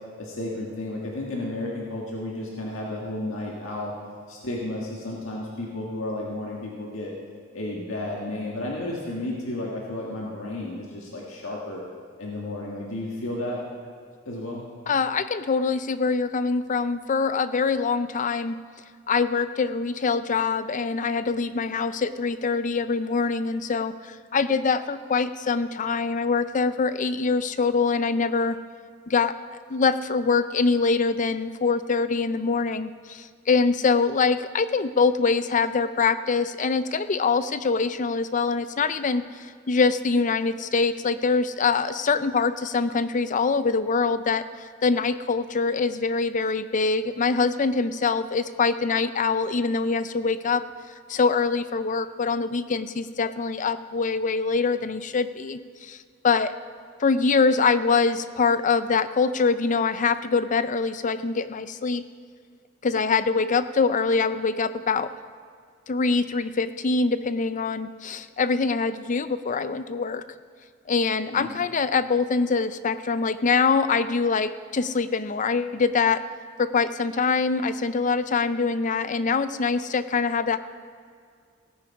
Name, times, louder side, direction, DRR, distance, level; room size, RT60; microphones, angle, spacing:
voice 1, 0.2-3.9 4.3-7.1 7.5-11.8 12.2-13.6 14.3-14.6 71.3-71.7, left 1 dB, 75° left, -3 dB, 1.9 m, -32 dB
voice 2, 14.9-18.6 19.1-28.6 29.1-29.3 29.7-50.6 51.1-56.0 56.2-56.5 57.0-62.0 62.8-65.1 65.9-70.2 70.9-76.2 76.6-80.6, left 4 dB, 40° left, 13 dB, 0.5 m, -24 dB
17.5 x 9.6 x 4.8 m, 2.2 s
head